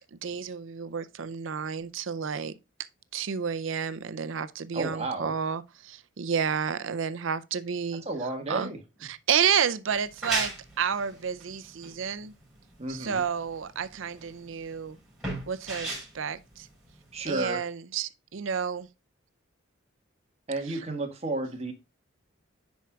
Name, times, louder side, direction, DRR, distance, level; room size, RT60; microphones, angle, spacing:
voice 1, 0.2-2.5 3.1-8.0 8.5-8.7 9.1-12.3 12.9-15.0 15.5-16.7 17.3-18.9, right 7 dB, 65° right, 0.5 m, -30 dB
voice 2, 4.7-5.3 7.9-8.8 12.8-13.2 17.1-17.6 20.5-21.7, right 2 dB, 30° right, 1.6 m, -32 dB
sound 1, 9.9-17.3, right 2 dB, 5° right, 4.6 m, -37 dB
10.5 x 4.6 x 2.3 m
head